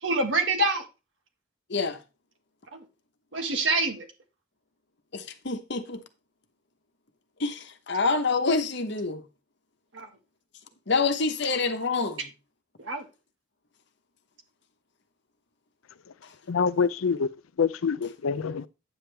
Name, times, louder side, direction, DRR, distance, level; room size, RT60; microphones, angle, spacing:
voice 1, 0.0-0.8 2.7-2.8 3.3-4.1 9.9-10.1 12.8-13.0, right 2 dB, 65° right, 1.8 m, -26 dB
voice 2, 5.1-6.0 7.4-9.2 10.9-12.3 16.2-16.3, left 4 dB, 55° left, 1.1 m, -27 dB
voice 3, 16.5-17.3 17.6-18.7, left 5 dB, 90° left, 0.5 m, -25 dB
8.9 x 7.3 x 3.4 m
head